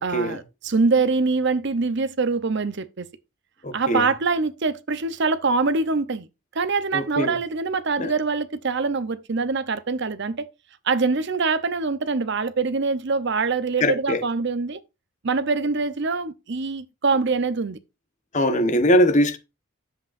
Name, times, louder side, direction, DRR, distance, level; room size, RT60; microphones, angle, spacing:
voice 1, 0.0-3.1 3.7-6.3 6.5-10.5 10.8-14.8 15.2-17.8, right 4 dB, 55° right, 0.7 m, -24 dB
voice 2, 3.6-4.1 6.9-7.3 8.0-8.1 13.8-14.2 18.3-19.4, equal, 35° left, 1.1 m, -21 dB
9.9 x 7.8 x 2.5 m
head